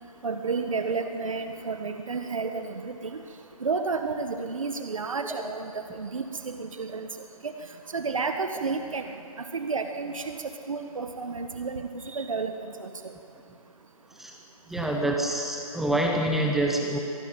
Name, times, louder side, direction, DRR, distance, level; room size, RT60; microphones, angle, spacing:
voice 1, 0.2-3.2 3.6-7.1 7.4-7.5 7.9-9.0 9.4-10.4 10.7-12.9, right 4 dB, 60° right, 7 dB, 1.6 m, -31 dB
voice 2, 14.7-17.0, right 1 dB, ahead, 0 dB, 0.9 m, -26 dB
25.0 x 19.0 x 9.1 m, 2.6 s
figure-of-eight pair, 155°, 19 cm